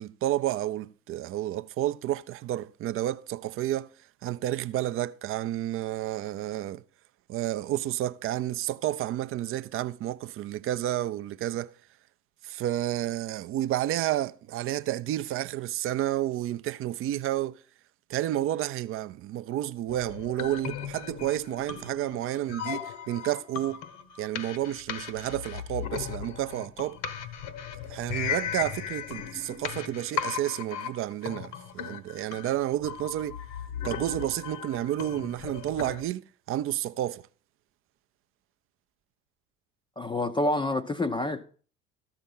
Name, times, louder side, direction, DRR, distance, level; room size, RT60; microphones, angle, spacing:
voice 1, 0.0-3.9 4.2-6.8 7.3-11.7 12.4-17.6 18.1-23.8 24.2-27.0 27.8-33.4 33.8-37.3, right 13 dB, 35° right, 0.5 m, -31 dB
sound 1, 19.9-36.0, left 8 dB, 60° left, 1.1 m, -37 dB
voice 2, 40.0-41.5, left 2 dB, 10° left, 0.5 m, -28 dB
13.5 x 5.7 x 5.5 m
figure-of-eight pair, 65°, 40 cm